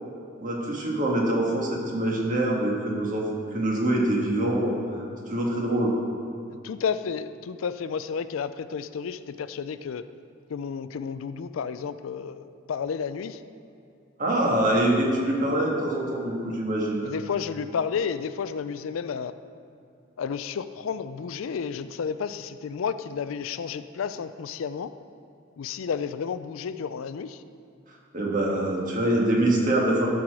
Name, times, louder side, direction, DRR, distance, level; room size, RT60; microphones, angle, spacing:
voice 1, 0.4-5.9 14.2-17.1 28.1-30.1, right 1 dB, 40° right, -2 dB, 1.5 m, -25 dB
voice 2, 6.6-10.0 10.5-13.4 17.0-19.3 20.2-24.9 25.6-27.4, left 6 dB, 80° left, 12 dB, 0.4 m, -31 dB
12.0 x 4.8 x 6.0 m, 2.5 s
head